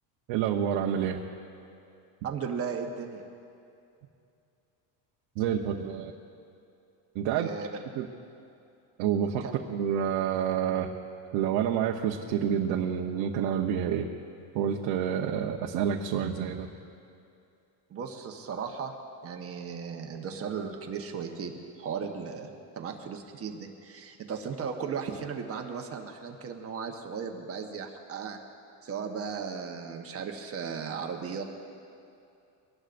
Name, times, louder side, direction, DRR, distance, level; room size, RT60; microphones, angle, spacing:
voice 1, 0.3-1.2 5.4-6.1 7.1-7.5 7.9-8.1 9.0-9.4 9.7-10.9 11.3-14.1 14.5-16.7, right 9 dB, 60° right, 0 dB, 1.1 m, -28 dB
voice 2, 2.2-3.2 7.3-7.7 9.4-9.5 17.9-18.9 19.2-21.5 21.8-28.4 28.8-31.4, right 6 dB, 30° right, 3 dB, 1.1 m, -36 dB
24.0 x 18.5 x 2.6 m, 2.6 s
cardioid pair, 155°, 47 cm